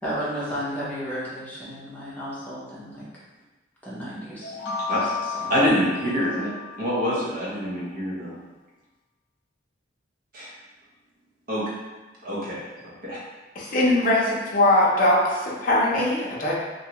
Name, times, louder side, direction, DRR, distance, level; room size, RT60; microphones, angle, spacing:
voice 1, 0.0-3.1 3.8-5.5, equal, 10° left, -9 dB, 0.7 m, -33 dB
sound 1, 4.4-7.2, left 6 dB, 80° left, 0.7 m, -33 dB
voice 2, 5.5-6.5 6.8-8.3 10.3-10.5 11.5-11.6 12.2-13.2, equal, 50° right, -8 dB, 0.7 m, -25 dB
voice 3, 13.6-16.5, left 1 dB, 45° left, -4 dB, 0.6 m, -21 dB
2.6 x 2.3 x 2.9 m, 1.2 s
head